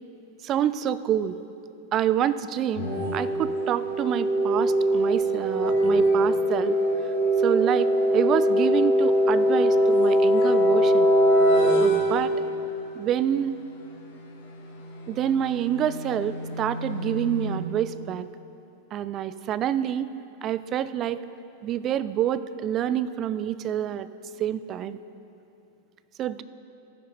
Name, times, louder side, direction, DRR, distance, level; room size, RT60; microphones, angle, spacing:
voice 1, 0.4-1.4 1.9-6.8 7.4-11.1 11.8-12.3 12.9-13.5 15.1-18.3 18.9-20.1 20.4-21.2 21.6-24.1 24.4-25.0 26.2-26.4, right 10 dB, 30° right, 15 dB, 0.3 m, -27 dB
sound 1, 2.8-12.7 14.9-17.6, equal, 65° left, 2.8 m, -22 dB
14.5 x 9.6 x 4.0 m, 2.9 s
supercardioid pair, 135°, 0 cm